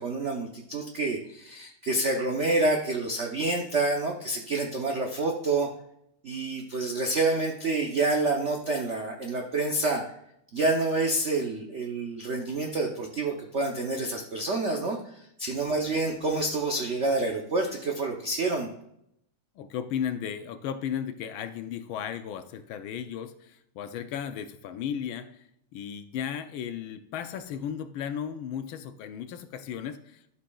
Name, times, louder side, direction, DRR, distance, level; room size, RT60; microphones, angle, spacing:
voice 1, 0.0-5.7 6.2-10.0 10.5-18.7, right 2 dB, 80° right, 2 dB, 0.6 m, -28 dB
voice 2, 19.6-30.2, left 8 dB, 75° left, 10 dB, 1.4 m, -35 dB
12.5 x 5.7 x 2.3 m, 0.76 s
omnidirectional pair, 2.4 m